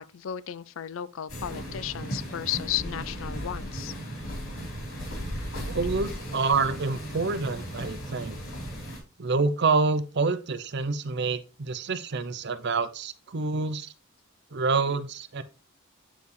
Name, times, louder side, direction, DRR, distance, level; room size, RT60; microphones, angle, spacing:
voice 1, 0.0-3.9, left 11 dB, 70° left, 0.4 m, -34 dB
sound 1, 1.3-9.0, equal, 85° left, 3.6 m, -36 dB
voice 2, 5.7-8.4 9.2-13.9 14.5-15.4, right 4 dB, 55° right, 0.6 m, -27 dB
9.1 x 4.7 x 3.2 m
head